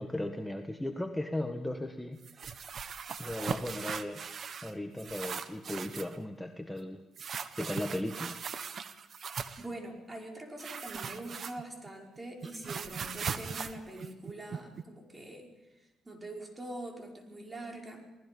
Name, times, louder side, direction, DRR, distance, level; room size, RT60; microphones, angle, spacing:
voice 1, 0.0-2.6 3.2-4.3 4.6-7.0 7.3-8.4, left 1 dB, 5° left, 5 dB, 1.5 m, -37 dB
sound 1, 2.2-4.7 5.0-6.2 7.2-9.7 10.6-11.9 12.2-14.8, right 6 dB, 55° right, 1.4 m, -39 dB
voice 2, 9.6-15.5 16.0-18.1, right 1 dB, 20° right, 1 dB, 5.2 m, -44 dB
28.5 x 19.0 x 5.4 m, 1.1 s
cardioid pair, 90°, 0 cm